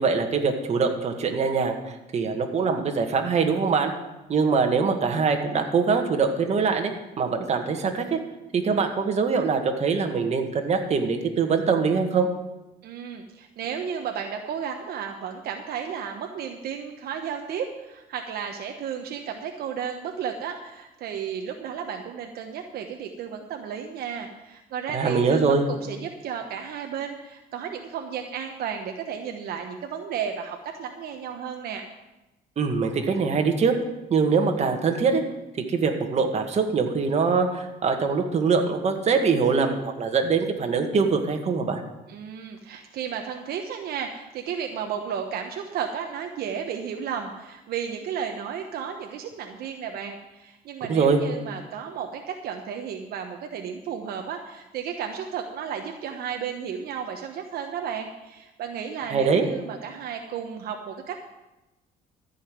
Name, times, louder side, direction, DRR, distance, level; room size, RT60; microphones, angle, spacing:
voice 1, 0.0-1.8 2.1-3.9 4.3-6.9 7.2-8.2 8.5-12.3 24.9-25.6 32.6-33.7 34.1-35.2 35.7-41.8 50.9-51.2 59.1-59.4, right 5 dB, 40° right, 4 dB, 1.8 m, -23 dB
voice 2, 12.8-31.8 42.1-61.2, right 7 dB, 65° right, 4 dB, 1.1 m, -33 dB
14.0 x 5.7 x 9.3 m, 1.0 s
cardioid pair, 110°, 17 cm